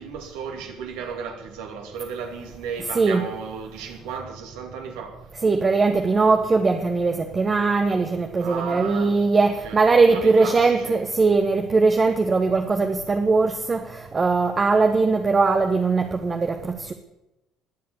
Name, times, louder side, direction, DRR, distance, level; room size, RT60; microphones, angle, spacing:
voice 1, 0.0-5.2 8.4-9.2 9.4-9.8 10.1-11.0, right 6 dB, 70° right, 2.6 m, -34 dB
voice 2, 5.4-16.9, right 4 dB, 30° right, 1.3 m, -20 dB
21.0 x 7.6 x 7.0 m
hypercardioid pair, 60°, 0 cm